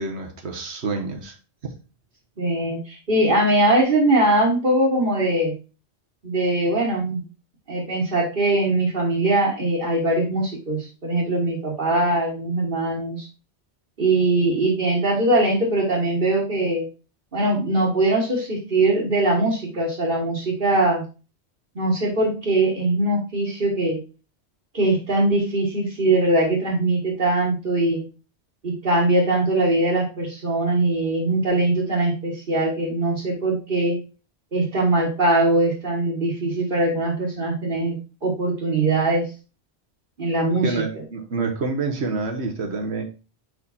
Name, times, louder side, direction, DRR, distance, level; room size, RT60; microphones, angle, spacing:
voice 1, 0.0-1.3 40.6-43.0, right 3 dB, 80° right, 3 dB, 1.4 m, -27 dB
voice 2, 2.4-5.6 6.2-7.2 7.7-13.2 14.0-16.9 17.3-21.0 21.7-24.0 24.7-28.0 28.6-34.0 34.5-39.3 40.2-40.7, right 2 dB, 50° right, -4 dB, 1.7 m, -21 dB
5.1 x 4.9 x 4.2 m, 0.33 s
omnidirectional pair, 1.1 m